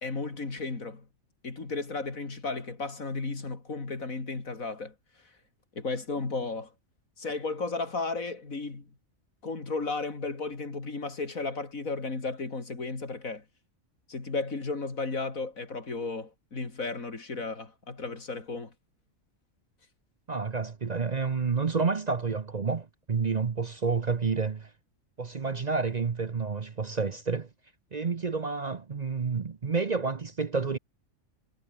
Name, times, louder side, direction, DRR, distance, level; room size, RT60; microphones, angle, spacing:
voice 1, 0.0-1.1 1.4-4.9 5.8-6.7 7.2-8.9 9.4-13.4 14.1-18.7, left 3 dB, 90° left, 3.7 m, -34 dB
voice 2, 20.3-24.7 25.2-27.5 27.9-30.8, right 4 dB, 35° right, 0.8 m, -29 dB
omnidirectional pair, 1.4 m